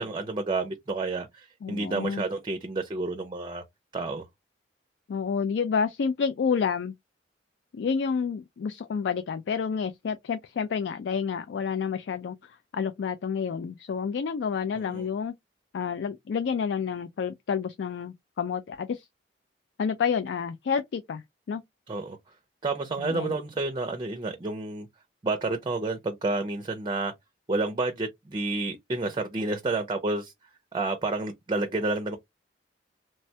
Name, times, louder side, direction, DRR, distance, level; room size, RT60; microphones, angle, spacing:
voice 1, 0.0-3.6 3.9-4.3 14.9-15.1 21.9-22.2 22.6-24.9 25.2-27.1 27.5-30.3 30.7-32.2, right 3 dB, 25° right, 0.4 m, -30 dB
voice 2, 1.6-2.2 5.1-6.9 7.7-15.4 15.7-19.1 19.8-21.2 21.5-21.6 23.0-23.4, left 6 dB, 70° left, 0.3 m, -29 dB
3.2 x 2.2 x 2.7 m
head